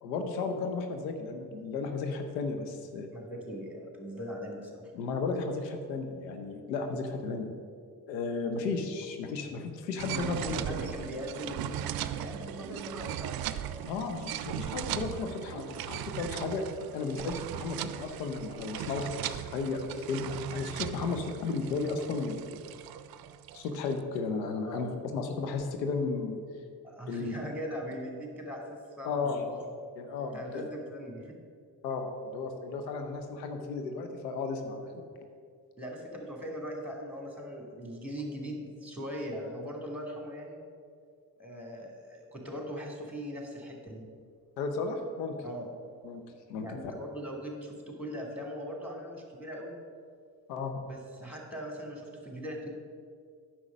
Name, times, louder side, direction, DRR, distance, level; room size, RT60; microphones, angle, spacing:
voice 1, 0.0-3.1 4.9-7.5 8.1-10.6 13.9-16.6 16.9-22.5 23.5-26.4 27.1-27.4 29.0-29.6 30.0-30.7 31.8-34.9 44.6-45.4 46.0-46.2 46.5-46.7 50.5-50.8, left 4 dB, 85° left, 6 dB, 0.9 m, -34 dB
voice 2, 3.1-4.8 10.2-14.1 24.6-24.9 26.8-29.7 30.3-31.4 35.8-40.6 41.4-44.0 45.4-45.7 46.6-49.7 50.9-52.7, equal, 5° right, 1 dB, 2.5 m, -40 dB
sound 1, 10.0-23.9, right 11 dB, 50° right, 0.5 m, -38 dB
9.7 x 6.3 x 5.2 m, 2.2 s
hypercardioid pair, 40°, 49 cm